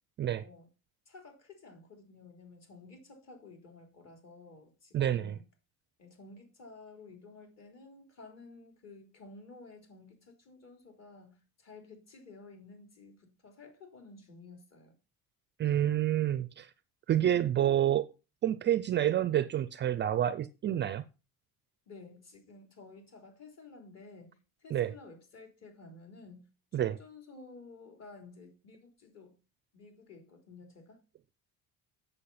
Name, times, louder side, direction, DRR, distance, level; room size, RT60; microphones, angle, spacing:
voice 1, 1.1-5.4 6.0-14.9 21.9-29.4 29.7-31.0, left 3 dB, 45° left, 3.9 m, -53 dB
voice 2, 4.9-5.3 15.6-16.7 17.1-18.1 18.4-21.0 24.7-24.9 26.7-27.0, right 11 dB, 30° right, 0.4 m, -28 dB
8.5 x 6.8 x 5.7 m
cardioid pair, 150°, 36 cm